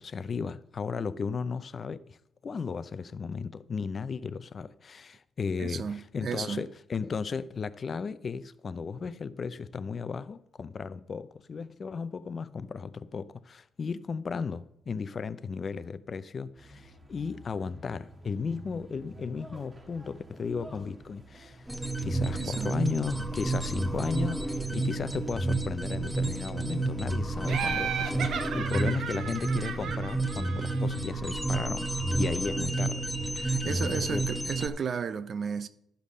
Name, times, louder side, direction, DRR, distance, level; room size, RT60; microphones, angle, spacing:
voice 1, 0.0-2.2 2.4-21.7 22.0-31.9 32.2-33.1 33.6-34.3, left 5 dB, 40° left, 0.5 m, -35 dB
voice 2, 5.6-6.6 22.3-22.7 33.4-35.7, right 6 dB, 55° right, 0.7 m, -34 dB
sound 1, 16.5-29.1, right 1 dB, 25° right, 1.6 m, -50 dB
sound 2, 21.7-34.7, right 2 dB, 5° right, 1.0 m, -30 dB
Laughter, 27.5-31.1, right 7 dB, 70° right, 1.1 m, -34 dB
11.5 x 5.3 x 6.5 m
cardioid pair, 90°, 0 cm